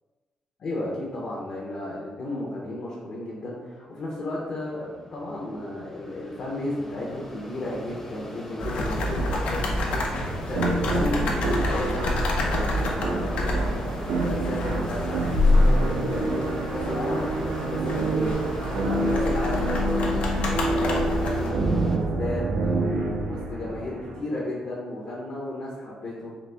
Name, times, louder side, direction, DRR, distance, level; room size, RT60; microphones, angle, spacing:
voice 1, 0.6-18.3 18.8-20.2 20.5-26.3, left 1 dB, 45° left, -5 dB, 0.7 m, -33 dB
Mechanisms, 4.2-22.0, left 1 dB, 15° left, 0.4 m, -41 dB
sound 1, 8.6-21.5, left 1 dB, 75° left, 0.6 m, -27 dB
sound 2, 10.5-24.2, right 2 dB, 80° right, 0.5 m, -28 dB
4.0 x 2.8 x 3.3 m, 1.4 s
wide cardioid pair, 175°, 2 cm